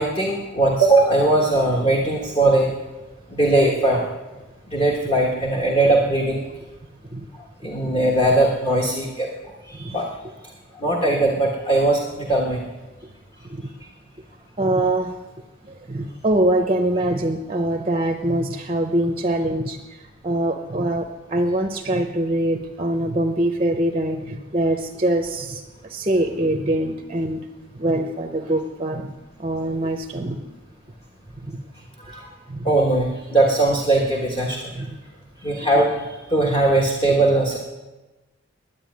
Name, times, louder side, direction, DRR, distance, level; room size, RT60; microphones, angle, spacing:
voice 1, 0.0-2.7 3.3-4.1 4.7-6.4 7.6-9.3 9.7-10.1 10.8-12.6 32.0-32.3 32.6-34.7 35.4-36.0 36.3-37.6, right 2 dB, 25° left, -1 dB, 1.4 m, -19 dB
voice 2, 14.6-15.2 15.7-27.4 27.7-29.1 29.4-30.4 31.4-31.6 32.5-32.7 34.7-35.0, right 1 dB, 30° right, 5 dB, 0.7 m, -23 dB
10.5 x 9.7 x 9.4 m, 1.1 s
head